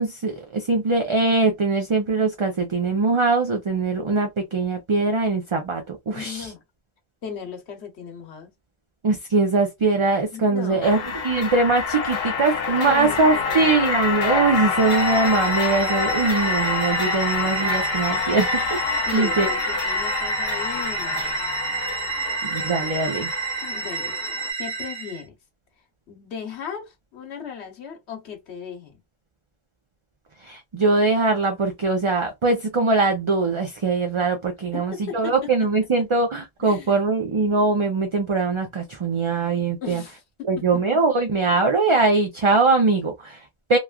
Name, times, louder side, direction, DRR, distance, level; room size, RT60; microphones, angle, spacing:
voice 1, 0.0-6.5 9.0-19.5 22.4-23.3 30.4-40.0 40.5-43.8, right 3 dB, 40° right, 0.4 m, -22 dB
voice 2, 6.1-6.6 7.2-8.5 10.3-10.9 12.8-13.7 19.1-21.4 23.6-24.1 24.6-25.4 26.1-29.0 34.7-35.7 36.6-37.0 39.8-41.0, left 7 dB, 85° left, 1.2 m, -36 dB
sound 1, 10.8-24.5, left 5 dB, 65° left, 0.8 m, -27 dB
sound 2, 14.7-25.2, right 5 dB, 80° right, 1.2 m, -30 dB
3.0 x 2.3 x 2.2 m
omnidirectional pair, 1.1 m